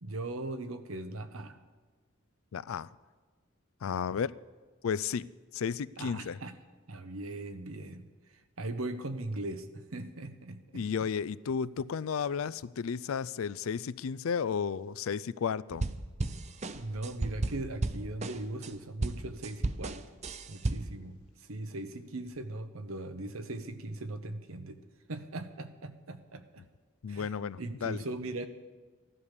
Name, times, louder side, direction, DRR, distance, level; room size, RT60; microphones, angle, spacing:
voice 1, 0.0-1.6 6.0-6.5 6.9-8.1 8.6-10.8 16.7-20.0 20.5-24.8 25.1-26.6 27.1-27.3 27.6-28.5, right 2 dB, 90° right, 9 dB, 1.1 m, -39 dB
voice 2, 2.5-2.9 3.8-4.3 4.8-5.3 5.5-6.4 10.7-15.9 27.0-28.0, left 6 dB, 80° left, 19 dB, 0.4 m, -33 dB
sound 1, 15.7-18.7 19.0-21.0, right 2 dB, 30° right, 0.6 m, -34 dB
14.5 x 11.5 x 6.7 m, 1.4 s
head